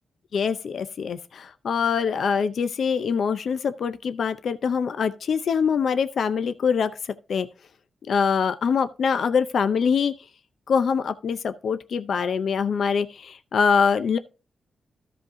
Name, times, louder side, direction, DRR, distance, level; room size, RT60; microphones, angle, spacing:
voice 1, 0.3-6.9 7.3-7.5 8.1-10.1 10.7-14.2, left 6 dB, 70° left, 0.6 m, -24 dB
13.5 x 5.1 x 3.7 m
cardioid pair, 80°, 0 cm